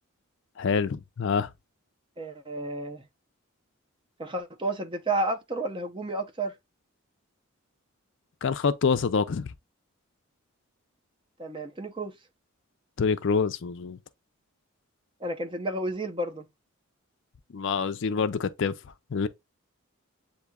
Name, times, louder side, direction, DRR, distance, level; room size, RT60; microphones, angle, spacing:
voice 1, 0.6-1.5 8.4-9.5 13.0-14.0 17.5-18.7 19.1-19.3, left 5 dB, 55° left, 0.4 m, -26 dB
voice 2, 2.2-3.0 4.2-6.5 11.4-12.2 15.2-16.5, right 2 dB, 25° right, 0.6 m, -31 dB
8.0 x 2.7 x 2.2 m
head